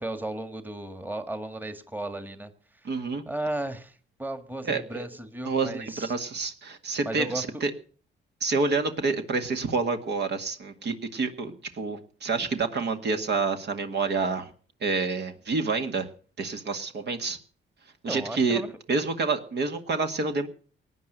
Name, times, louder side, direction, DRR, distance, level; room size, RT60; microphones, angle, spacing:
voice 1, 0.0-2.5 2.8-2.9 3.2-6.1 7.0-7.6 18.0-18.7, right 2 dB, 10° right, 10 dB, 1.7 m, -35 dB
voice 2, 2.8-3.2 4.6-5.1 5.5-7.7 8.4-14.5 14.8-16.1 16.4-17.4 18.0-18.6 18.9-20.5, right 4 dB, 60° right, 7 dB, 1.9 m, -28 dB
18.5 x 9.7 x 6.7 m, 0.42 s
cardioid pair, 90°, 20 cm